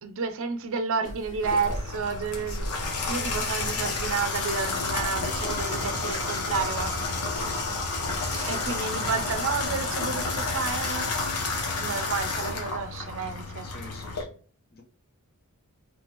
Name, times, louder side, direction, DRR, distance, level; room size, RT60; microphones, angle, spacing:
voice 1, 0.0-2.7 3.1-7.3 8.5-11.1 11.8-13.7, right 5 dB, 60° right, 0.6 m, -31 dB
sound 1, 1.0-11.0, equal, 20° left, 2.1 m, -40 dB
Water tap faucet / Bathtub (filling or washing), 1.4-14.2, left 3 dB, 85° left, 1.0 m, -30 dB
voice 2, 13.6-14.4 14.7-14.8, left 3 dB, 45° left, 0.9 m, -47 dB
4.2 x 3.3 x 2.9 m
head